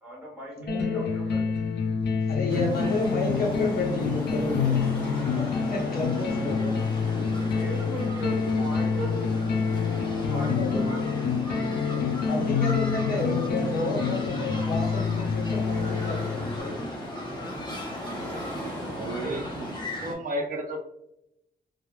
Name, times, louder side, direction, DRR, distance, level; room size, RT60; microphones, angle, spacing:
voice 1, 0.0-1.4 7.0-9.5 9.9-10.6 10.9-11.3 12.1-12.2 18.8-19.4, right 2 dB, 10° right, -3 dB, 1.1 m, -39 dB
sound 1, 0.7-16.6, left 5 dB, 85° left, 0.4 m, -27 dB
voice 2, 0.7-1.0 2.3-5.2 5.7-6.9 7.6-7.7 10.3-10.8 12.2-16.9 17.2-17.5, left 2 dB, 60° left, -2 dB, 0.8 m, -31 dB
sound 2, 2.5-20.1, equal, 25° left, 0.6 m, -37 dB
Car passing by / Traffic noise roadway noise / Engine, 2.8-19.7, left 1 dB, 10° left, 1.3 m, -43 dB
voice 3, 18.6-20.8, right 1 dB, 50° right, 3 dB, 0.4 m, -34 dB
3.1 x 2.0 x 2.2 m, 0.81 s
wide cardioid pair, 130°, 17 cm